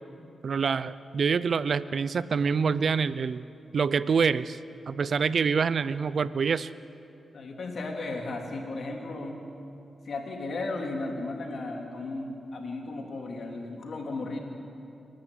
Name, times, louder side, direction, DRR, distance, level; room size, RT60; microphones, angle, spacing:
voice 1, 0.4-3.4 3.7-4.6 4.9-6.7, right 5 dB, 65° right, 16 dB, 0.6 m, -26 dB
voice 2, 7.3-9.5 10.1-14.4, left 2 dB, 65° left, 1 dB, 3.6 m, -35 dB
29.5 x 11.5 x 9.3 m, 2.7 s
cardioid pair, 65°, 0 cm